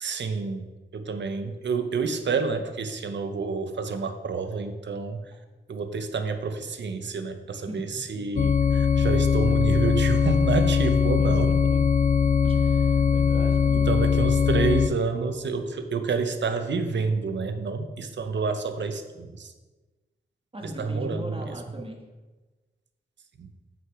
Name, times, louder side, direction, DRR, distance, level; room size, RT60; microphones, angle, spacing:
voice 1, 0.0-0.7 0.9-5.2 5.7-11.5 13.9-19.5 20.6-21.9 23.4-23.5, right 4 dB, 90° right, 8 dB, 0.7 m, -29 dB
voice 2, 7.5-8.5 11.2-11.9 12.4-13.9 20.5-22.0, equal, 30° right, 2 dB, 1.4 m, -39 dB
sound 1, 8.3-14.9, left 6 dB, 45° left, 0.4 m, -21 dB
7.7 x 5.8 x 4.7 m, 1.2 s
cardioid pair, 50°, 18 cm